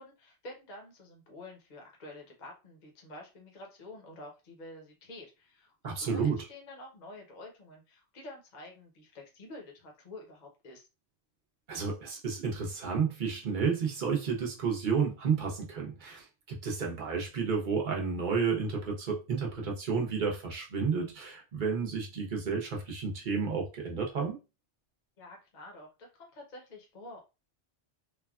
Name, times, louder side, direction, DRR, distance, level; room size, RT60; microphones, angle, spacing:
voice 1, 0.0-10.9 25.2-27.2, left 2 dB, 45° left, 0.9 m, -49 dB
voice 2, 5.8-6.4 11.7-24.4, right 5 dB, 50° right, 0.8 m, -31 dB
3.3 x 2.2 x 2.3 m
omnidirectional pair, 1.2 m